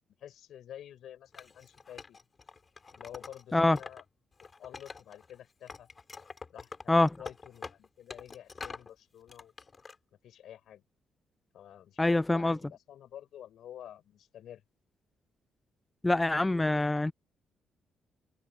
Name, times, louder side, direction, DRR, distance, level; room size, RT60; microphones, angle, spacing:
voice 1, 0.2-2.2 2.9-4.0 4.6-5.9 6.5-9.5 10.2-10.8 11.5-14.6, left 11 dB, 75° left, 5.2 m, -49 dB
Wood, 1.3-4.0 4.3-5.4 5.7-8.9 9.3-9.9, left 4 dB, 35° left, 5.5 m, -46 dB
voice 2, 12.0-12.6 16.0-17.1, left 2 dB, 15° left, 0.5 m, -25 dB
cardioid pair, 90°, 0 cm